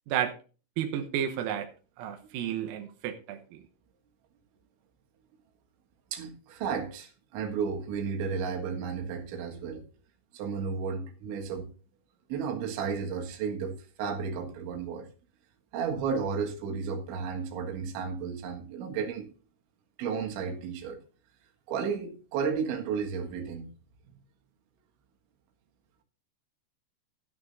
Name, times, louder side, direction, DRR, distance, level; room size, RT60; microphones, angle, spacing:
voice 1, 0.8-1.7 2.0-3.6, right 10 dB, 90° right, 3.7 m, -32 dB
voice 2, 6.1-9.9 10.3-11.7 12.3-15.1 15.7-19.3 20.0-21.0 21.7-23.7 24.1-24.2, right 6 dB, 70° right, 3.9 m, -33 dB
13.5 x 13.0 x 2.7 m
omnidirectional pair, 6.0 m